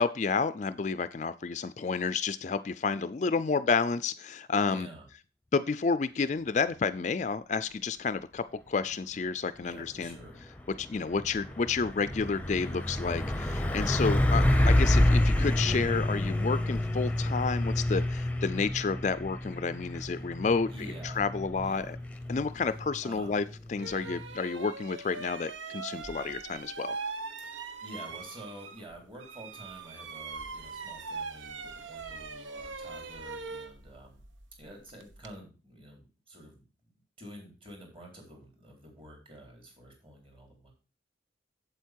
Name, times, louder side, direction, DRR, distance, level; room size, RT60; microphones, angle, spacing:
voice 1, 0.0-4.9 5.5-10.2 10.8-20.7 21.0-22.0 22.3-27.0, left 4 dB, 40° left, 13 dB, 0.4 m, -30 dB
voice 2, 4.6-5.1 9.6-10.4 20.1-20.3 20.7-21.2 21.6-22.0 23.0-23.4 27.4-34.2 34.6-36.6 37.2-40.7, right 1 dB, 30° right, 1 dB, 3.7 m, -48 dB
Truck, 10.0-24.3, left 1 dB, 10° left, 0.7 m, -28 dB
sound 1, 23.1-23.3 23.8-28.9 29.2-35.4, right 4 dB, 90° right, 1.0 m, -41 dB
8.1 x 7.9 x 4.5 m, 0.33 s
head